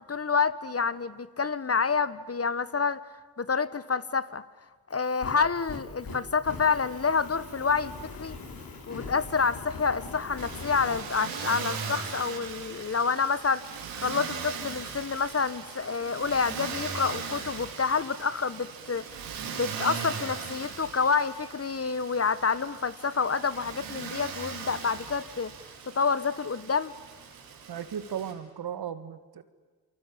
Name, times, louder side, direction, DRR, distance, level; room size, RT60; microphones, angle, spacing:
voice 1, 0.1-3.0 3.4-4.4 4.9-8.3 8.9-19.3 19.5-25.5 25.9-26.9, left 5 dB, 35° left, 15 dB, 1.4 m, -28 dB
Fire, 4.9-11.0, left 3 dB, 60° left, 4.9 m, -42 dB
Motor vehicle (road), 10.4-28.3, right 6 dB, 90° right, 4.1 m, -39 dB
voice 2, 27.7-29.4, right 8 dB, 65° right, 12 dB, 1.9 m, -36 dB
28.5 x 23.5 x 8.7 m, 1.4 s
hypercardioid pair, 45°, 40 cm